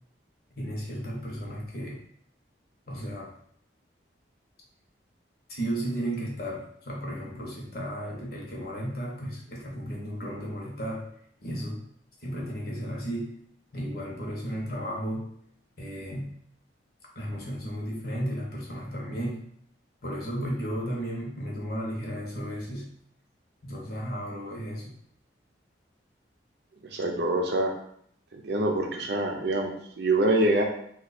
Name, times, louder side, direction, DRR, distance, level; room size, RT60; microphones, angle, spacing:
voice 1, 0.5-2.0 2.9-3.3 5.5-11.1 11.4-11.8 12.2-13.3 13.7-15.3 15.8-16.3 17.1-19.4 20.0-22.9 23.6-24.9, equal, 55° left, -3 dB, 1.0 m, -34 dB
voice 2, 26.8-27.7 28.3-30.6, right 1 dB, 60° right, 2 dB, 0.6 m, -25 dB
3.0 x 2.4 x 4.1 m, 0.66 s
head